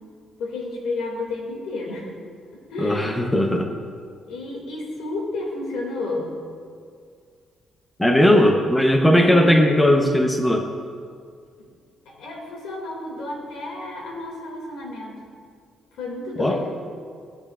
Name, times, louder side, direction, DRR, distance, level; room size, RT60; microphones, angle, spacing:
voice 1, 0.4-2.1 2.5-3.3 4.3-6.3 8.1-8.6 9.0-10.2 12.1-15.2 16.0-16.8, left 2 dB, 85° left, -1 dB, 2.3 m, -31 dB
voice 2, 2.8-3.8 8.0-10.7 16.4-16.6, equal, 10° left, 4 dB, 0.8 m, -18 dB
16.0 x 6.8 x 2.4 m, 2.1 s
cardioid pair, 90°, 0 cm